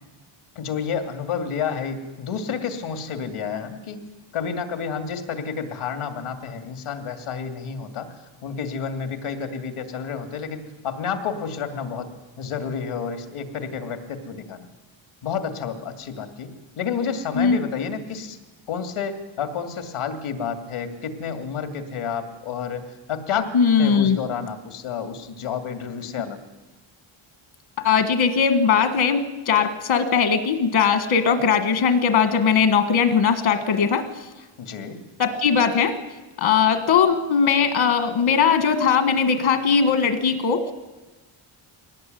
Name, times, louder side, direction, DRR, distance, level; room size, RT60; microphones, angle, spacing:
voice 1, 0.5-4.0 4.3-8.2 8.4-12.1 12.4-14.7 15.2-18.4 18.7-23.5 23.8-26.4 34.6-35.0, left 6 dB, 85° left, 7 dB, 2.7 m, -30 dB
voice 2, 23.5-24.2 27.8-34.0 35.2-36.0 36.4-40.7, left 6 dB, 70° left, 8 dB, 1.7 m, -19 dB
22.5 x 18.5 x 9.3 m, 1.2 s
wide cardioid pair, 170°, 49 cm